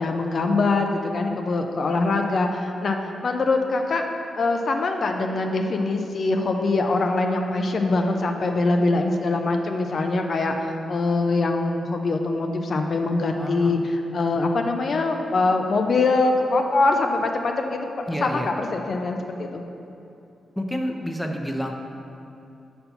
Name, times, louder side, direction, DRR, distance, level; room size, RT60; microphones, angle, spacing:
voice 1, 0.0-4.0 4.3-17.9 18.2-19.6, left 3 dB, 55° left, 4 dB, 0.5 m, -23 dB
voice 2, 13.4-13.7 18.1-18.5 20.6-21.7, equal, 5° left, 2 dB, 0.6 m, -28 dB
5.3 x 4.3 x 5.7 m, 2.7 s
cardioid pair, 70°, 0 cm